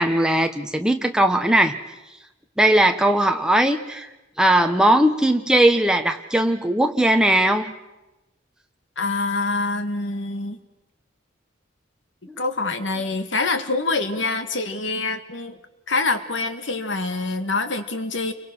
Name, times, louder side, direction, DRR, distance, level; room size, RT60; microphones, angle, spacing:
voice 1, 0.0-1.8 2.6-4.1 4.4-7.7, right 1 dB, 5° right, 5 dB, 1.2 m, -19 dB
voice 2, 9.0-10.6 12.4-15.6 15.9-18.3, left 3 dB, 70° left, 9 dB, 1.8 m, -25 dB
29.0 x 23.5 x 6.2 m, 0.99 s
head